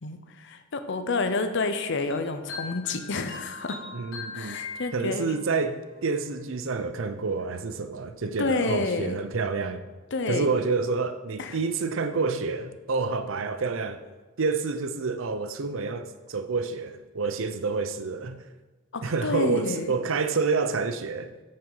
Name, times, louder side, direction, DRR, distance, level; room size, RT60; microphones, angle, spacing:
voice 1, 0.0-3.8 4.1-5.3 8.4-9.2 10.1-10.5 11.4-11.6 18.9-19.9, left 3 dB, 60° left, 0.7 m, -29 dB
sound 1, 2.1-5.6, left 5 dB, 80° left, 1.9 m, -40 dB
voice 2, 3.9-4.6 4.9-9.8 10.3-14.0 14.4-18.4 19.0-21.3, right 4 dB, 70° right, 0.6 m, -28 dB
8.8 x 5.5 x 5.6 m
head